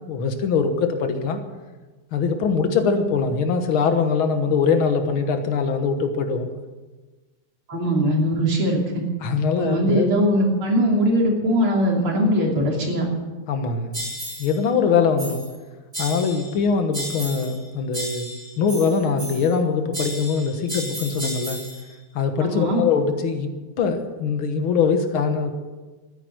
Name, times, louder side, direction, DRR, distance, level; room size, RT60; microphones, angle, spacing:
voice 1, 0.1-1.4 2.1-6.5 9.2-10.1 13.5-14.0 14.4-15.4 16.0-18.3 18.6-21.6 22.1-23.5 23.8-25.6, left 5 dB, 75° left, 7 dB, 2.1 m, -22 dB
voice 2, 7.7-9.0 9.6-13.1 22.4-22.8, equal, 80° right, 0 dB, 3.8 m, -21 dB
sound 1, 13.9-14.6 15.2-15.6 15.9-16.6 16.9-17.6 17.9-19.6 19.9-21.8, equal, 15° right, 3.5 m, -33 dB
13.5 x 9.3 x 9.4 m, 1.3 s
omnidirectional pair, 2.3 m